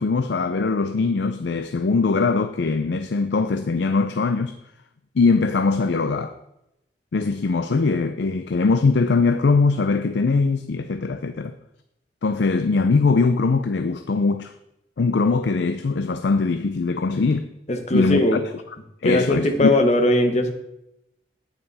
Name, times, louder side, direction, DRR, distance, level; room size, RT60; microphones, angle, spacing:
voice 1, 0.0-4.6 5.2-6.3 7.1-11.5 12.2-14.5 15.0-17.5 17.9-18.5 19.0-19.8, left 4 dB, 75° left, 0.5 m, -21 dB
voice 2, 17.7-18.4 19.0-20.5, left 1 dB, 40° left, 1.0 m, -19 dB
9.0 x 8.8 x 4.1 m
head